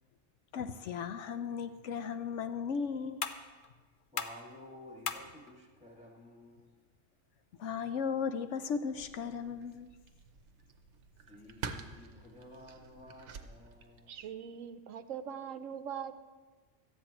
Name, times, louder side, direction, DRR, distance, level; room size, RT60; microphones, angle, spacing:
voice 1, 0.5-3.2 7.6-9.9, left 6 dB, 70° left, 9 dB, 0.9 m, -36 dB
sound 1, 1.7-8.7, left 6 dB, 50° left, 0.7 m, -45 dB
voice 2, 4.1-6.8 11.3-14.2, left 1 dB, 5° right, -1 dB, 2.2 m, -53 dB
sound 2, 8.9-14.3, right 5 dB, 65° right, 1.1 m, -48 dB
voice 3, 14.1-16.1, right 8 dB, 85° right, 10 dB, 1.1 m, -41 dB
17.5 x 13.5 x 3.0 m, 1.4 s
omnidirectional pair, 1.3 m